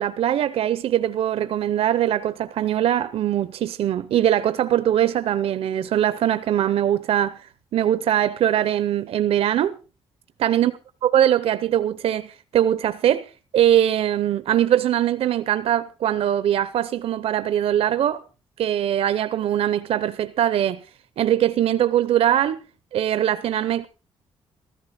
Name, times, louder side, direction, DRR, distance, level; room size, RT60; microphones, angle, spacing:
voice 1, 0.0-9.8 10.4-10.7 11.0-18.2 18.6-20.8 21.2-22.6 22.9-23.9, right 11 dB, 75° right, 0.7 m, -21 dB
14.5 x 14.0 x 4.1 m
cardioid pair, 120°, 10 cm